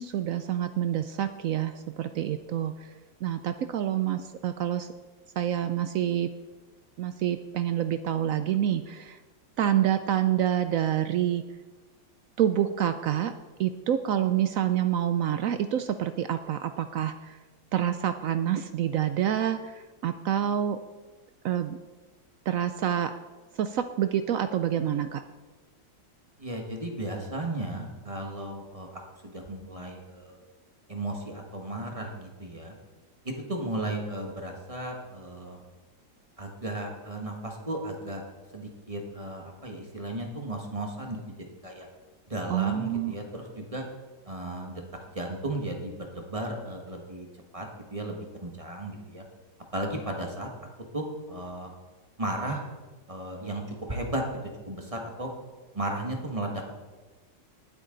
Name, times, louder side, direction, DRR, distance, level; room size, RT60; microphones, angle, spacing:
voice 1, 0.0-2.9 3.2-4.9 5.4-6.3 7.0-9.2 9.6-11.4 12.4-13.3 13.6-17.4 17.7-20.8 21.4-21.8 22.5-23.1 23.5-25.2 42.5-43.2, right 10 dB, 80° right, 10 dB, 0.7 m, -27 dB
voice 2, 26.4-30.4 30.9-32.7 33.2-35.6 36.4-38.2 38.5-41.3 41.6-41.9 42.3-43.8 44.3-44.7 45.1-47.3 47.5-47.7 47.9-49.2 49.7-50.5 50.9-51.7 52.2-52.6 53.1-53.6 53.9-54.2 54.7-55.3 55.7-56.6, right 1 dB, 20° right, 2 dB, 1.4 m, -35 dB
19.5 x 8.3 x 3.9 m, 1.3 s
omnidirectional pair, 2.0 m